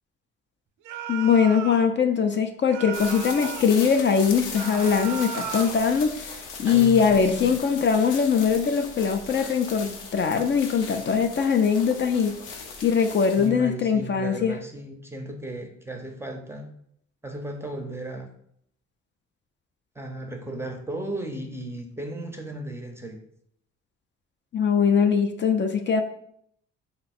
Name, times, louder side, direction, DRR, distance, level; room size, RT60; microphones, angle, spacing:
sound 1, 0.8-1.9 2.7-3.8 4.5-5.9, right 9 dB, 85° right, 0.5 m, -35 dB
voice 1, 1.1-6.1 6.6-12.4 12.8-14.5 24.5-26.0, left 6 dB, 40° left, 6 dB, 0.4 m, -21 dB
sound 2, 2.9-13.5, left 4 dB, 85° left, 0.7 m, -38 dB
voice 2, 6.6-7.5 13.4-16.7 17.2-18.3 19.9-23.2, right 1 dB, 10° right, 3 dB, 0.6 m, -35 dB
3.9 x 2.2 x 4.2 m, 0.69 s
cardioid pair, 90°, 30 cm